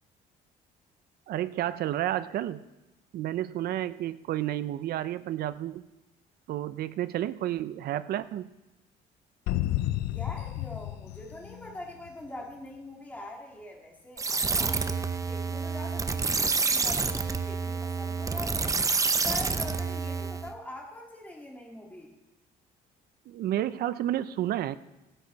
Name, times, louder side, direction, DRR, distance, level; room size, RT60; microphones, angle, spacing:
voice 1, 1.3-2.6 3.1-5.8 6.5-8.5 23.3-24.8, right 12 dB, 65° right, 14 dB, 0.6 m, -31 dB
sound 1, 9.5-12.2, left 14 dB, 90° left, 0.5 m, -31 dB
voice 2, 10.0-18.7 19.2-22.1, left 1 dB, 10° left, -2 dB, 2.7 m, -43 dB
sound 2, 14.2-20.5, right 4 dB, 20° right, 0.7 m, -28 dB
18.0 x 9.9 x 4.1 m, 1.0 s
cardioid pair, 110°, 17 cm